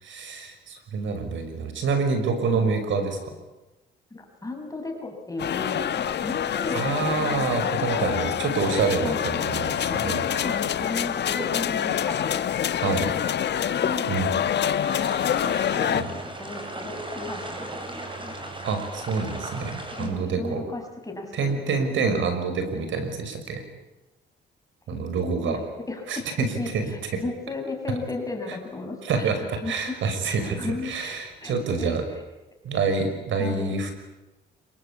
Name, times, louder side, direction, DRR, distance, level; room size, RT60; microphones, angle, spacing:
voice 1, 0.0-3.4 6.7-10.2 12.8-13.1 14.1-14.3 15.9-16.1 18.6-20.6 21.3-23.6 24.9-25.6 26.1-26.9 27.1-27.2 29.0-30.6 30.8-32.0 32.6-33.9, right 4 dB, 75° right, 7 dB, 6.0 m, -27 dB
voice 2, 2.5-2.8 4.1-8.4 9.0-9.2 9.8-12.5 13.0-13.1 13.4-14.1 15.0-18.3 19.9-21.9 24.9-30.0 30.3-32.2 33.4-33.7, left 2 dB, 15° left, 2 dB, 6.7 m, -35 dB
sound 1, 5.4-16.0, left 9 dB, 60° left, 1.3 m, -26 dB
sound 2, 14.8-20.1, right 2 dB, 25° right, 7.3 m, -37 dB
27.5 x 23.5 x 8.6 m, 1.1 s
cardioid pair, 90°, 20 cm